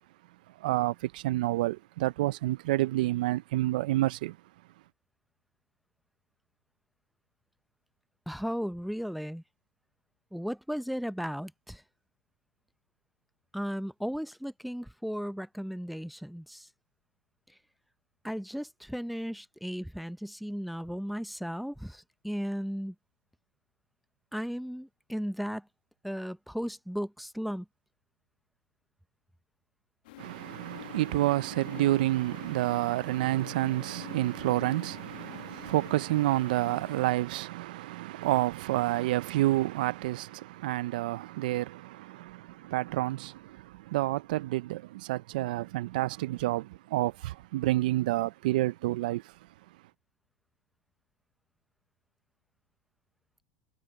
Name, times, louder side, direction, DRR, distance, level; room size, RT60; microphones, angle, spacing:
voice 1, 0.6-4.4 30.2-49.3, right 16 dB, 80° right, 0.6 m, -29 dB
voice 2, 8.3-9.4 10.3-11.8 13.5-16.7 17.5-17.6 18.2-22.9 24.3-25.7 26.0-27.7, equal, ahead, 0.7 m, -35 dB
sound 1, 30.0-37.1, left 20 dB, 80° left, 1.3 m, -47 dB
supercardioid pair, 110°, 5 cm